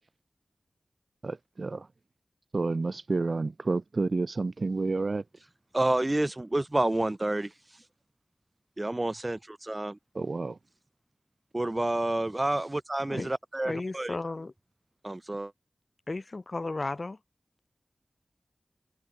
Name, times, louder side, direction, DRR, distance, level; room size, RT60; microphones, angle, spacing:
voice 1, 1.2-1.9 2.5-5.2 10.1-10.6, right 3 dB, 50° right, 1.2 m, -30 dB
voice 2, 5.7-7.5 8.8-10.0 11.5-14.1 15.0-15.5, right 1 dB, 25° right, 2.0 m, -29 dB
voice 3, 13.6-14.5 16.1-17.2, left 2 dB, 40° left, 6.4 m, -34 dB
wide cardioid pair, 90°, 0 cm